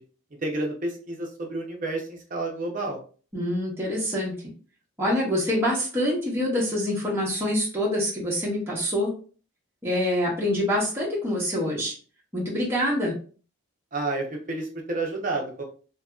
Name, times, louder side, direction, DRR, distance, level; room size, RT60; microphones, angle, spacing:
voice 1, 0.4-3.0 13.9-15.6, right 2 dB, 40° right, 1 dB, 0.7 m, -30 dB
voice 2, 3.3-4.3 5.0-9.1 9.8-11.9 12.3-13.1, left 1 dB, 10° right, -6 dB, 0.9 m, -25 dB
2.8 x 2.8 x 2.3 m, 0.39 s
head